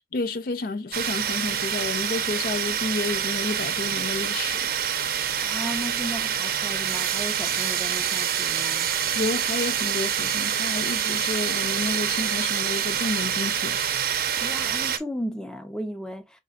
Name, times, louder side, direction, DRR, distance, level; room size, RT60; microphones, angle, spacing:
voice 1, 0.1-4.7 9.1-13.8, left 3 dB, 55° left, 0.5 m, -30 dB
sound 1, 0.9-15.0, right 9 dB, 55° right, 0.6 m, -26 dB
voice 2, 5.4-8.9 14.4-16.4, equal, 5° left, 0.5 m, -35 dB
5.2 x 3.2 x 2.3 m
head